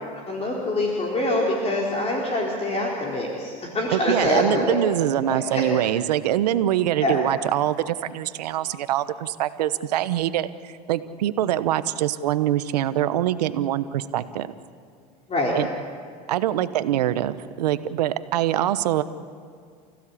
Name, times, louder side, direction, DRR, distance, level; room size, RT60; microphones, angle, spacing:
voice 1, 0.3-4.8 5.3-5.6 7.0-7.2 15.3-15.5, left 1 dB, 30° left, -2 dB, 4.4 m, -25 dB
voice 2, 3.9-14.5 15.5-15.7 16.3-19.0, right 12 dB, 90° right, 13 dB, 1.0 m, -24 dB
29.5 x 16.0 x 8.6 m, 2.2 s
hypercardioid pair, 90°, 20 cm